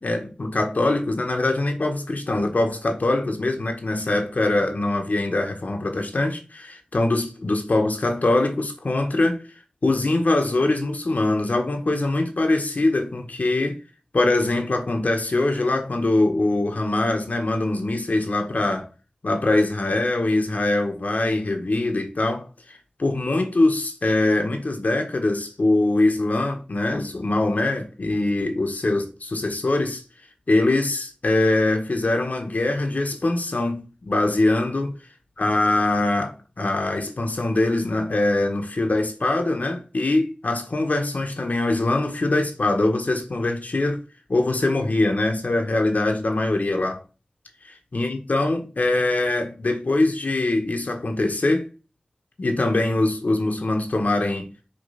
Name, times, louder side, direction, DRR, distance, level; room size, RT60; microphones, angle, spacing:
voice 1, 0.0-9.4 9.8-13.8 14.1-18.9 19.2-30.0 30.5-35.0 35.4-44.0 44.3-47.0 47.6-51.7 52.4-54.5, left 2 dB, 75° left, 1.4 m, -23 dB
6.7 x 3.3 x 5.7 m
wide cardioid pair, 50°, 3 cm